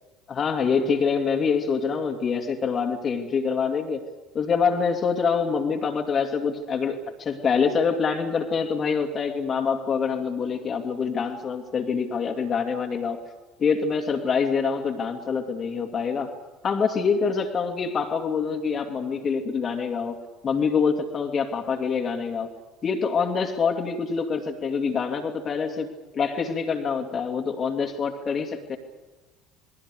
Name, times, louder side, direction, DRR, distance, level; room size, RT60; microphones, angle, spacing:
voice 1, 0.3-4.0 4.3-13.2 13.6-16.3 16.6-20.2 20.4-22.5 22.8-25.9 26.2-28.8, left 5 dB, 35° left, 3 dB, 2.5 m, -25 dB
28.0 x 21.0 x 6.7 m, 1.2 s
figure-of-eight pair, 60°, 0 cm